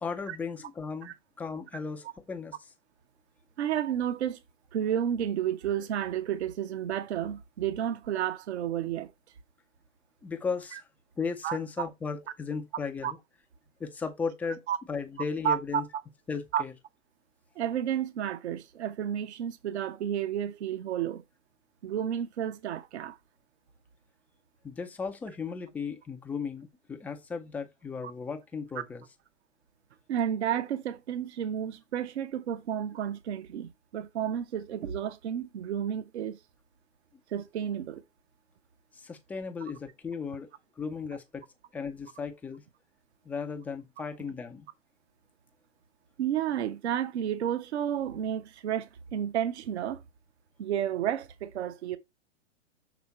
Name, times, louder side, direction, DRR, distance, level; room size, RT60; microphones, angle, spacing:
voice 1, 0.0-2.6 10.2-10.9 11.2-13.2 13.8-14.6 14.9-15.8 16.3-16.7 24.6-29.0 38.9-40.5 40.8-41.4 41.7-42.6 43.2-44.7, left 5 dB, 5° left, 0.4 m, -36 dB
voice 2, 3.6-4.4 4.7-9.1 10.7-10.8 11.4-11.9 13.0-13.1 14.7-14.8 15.4-15.8 16.5-16.6 17.6-21.2 21.8-23.2 30.1-36.4 37.3-38.0 46.2-50.0 50.6-52.0, right 10 dB, 60° right, 0.9 m, -31 dB
7.1 x 3.6 x 4.3 m
hypercardioid pair, 115°, 37 cm